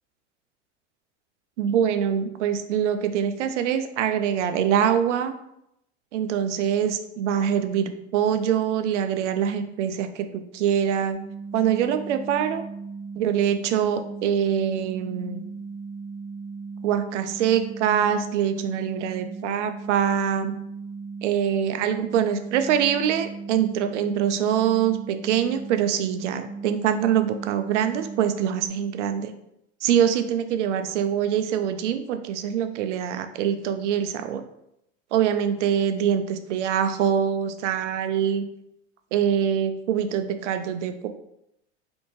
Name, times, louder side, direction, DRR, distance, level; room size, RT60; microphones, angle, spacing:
voice 1, 1.6-5.4 6.1-11.2 11.5-12.6 13.2-15.4 16.8-20.5 21.2-29.3 29.8-34.4 35.1-38.5 39.1-41.1, right 9 dB, 80° right, 9 dB, 0.5 m, -24 dB
sound 1, 11.1-28.7, right 4 dB, 10° right, 0.3 m, -37 dB
3.4 x 2.6 x 3.0 m, 0.80 s
hypercardioid pair, 100°, 35 cm